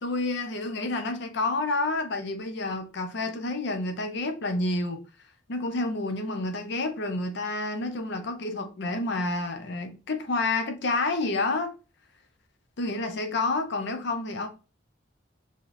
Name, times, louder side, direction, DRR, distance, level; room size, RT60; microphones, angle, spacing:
voice 1, 0.0-5.0 5.5-11.7 12.8-14.5, left 2 dB, 60° left, 0.6 m, -29 dB
4.9 x 2.8 x 2.6 m
head